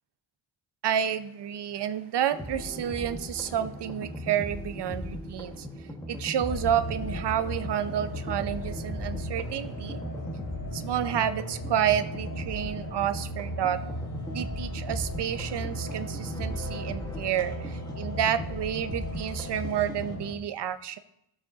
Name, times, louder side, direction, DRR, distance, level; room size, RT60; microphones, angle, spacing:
voice 1, 0.8-5.7 6.1-10.0 10.7-13.8 14.3-21.0, right 10 dB, 55° right, 12 dB, 0.6 m, -30 dB
sound 1, 2.3-20.2, left 1 dB, 10° left, 1.4 m, -38 dB
sound 2, 6.5-20.3, right 1 dB, 70° left, 2.7 m, -37 dB
16.0 x 7.1 x 2.7 m, 0.78 s
wide cardioid pair, 130°, 49 cm